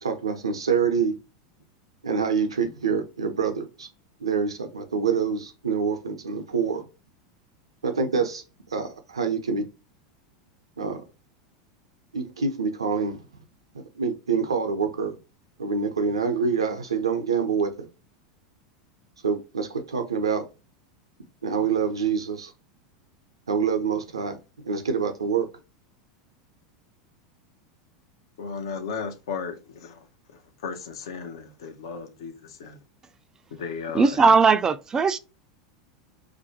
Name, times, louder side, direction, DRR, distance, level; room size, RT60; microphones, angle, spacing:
voice 1, 0.0-1.2 2.0-3.9 4.2-6.8 7.8-8.4 8.7-9.7 10.8-11.0 12.1-13.2 13.7-15.1 15.6-17.9 19.2-20.4 21.4-22.5 23.5-24.4 24.6-25.5, right 5 dB, 85° right, 0.5 m, -26 dB
voice 2, 28.4-30.1 30.6-32.8 33.5-34.1, left 5 dB, 70° left, 0.6 m, -35 dB
voice 3, 33.9-35.2, right 4 dB, 20° right, 0.3 m, -18 dB
2.5 x 2.1 x 2.7 m
hypercardioid pair, 90°, 3 cm